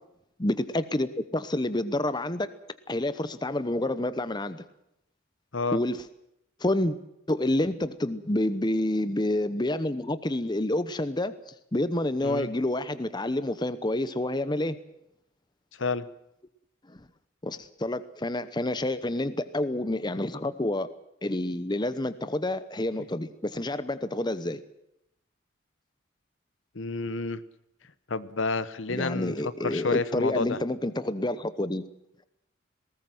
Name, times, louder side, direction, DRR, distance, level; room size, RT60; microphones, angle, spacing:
voice 1, 0.4-2.5 2.9-4.6 5.7-6.0 6.6-7.0 7.3-11.3 11.7-14.8 16.9-17.0 17.4-20.9 21.2-24.6 28.9-31.8, left 1 dB, 20° left, 13 dB, 0.9 m, -28 dB
voice 2, 26.7-27.4 28.1-30.6, left 3 dB, 65° left, 15 dB, 1.0 m, -30 dB
20.0 x 18.5 x 7.8 m, 0.81 s
head